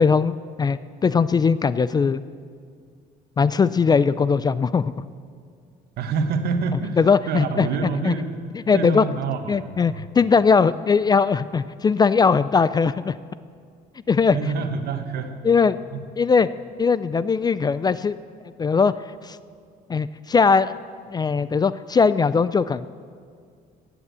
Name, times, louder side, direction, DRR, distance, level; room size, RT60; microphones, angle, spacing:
voice 1, 0.0-2.2 3.4-4.9 7.0-7.7 8.0-8.1 8.7-9.0 9.5-13.2 14.1-14.4 15.4-15.8 16.2-16.5 16.8-18.2 18.6-18.9 19.2-19.4 19.9-20.8 21.1-22.9, left 5 dB, 25° left, 16 dB, 0.3 m, -19 dB
voice 2, 6.0-8.3 8.7-10.0 14.3-15.4 15.9-16.0, right 5 dB, 70° right, 7 dB, 1.4 m, -27 dB
14.5 x 10.0 x 8.1 m, 2.1 s
cardioid pair, 110°, 17 cm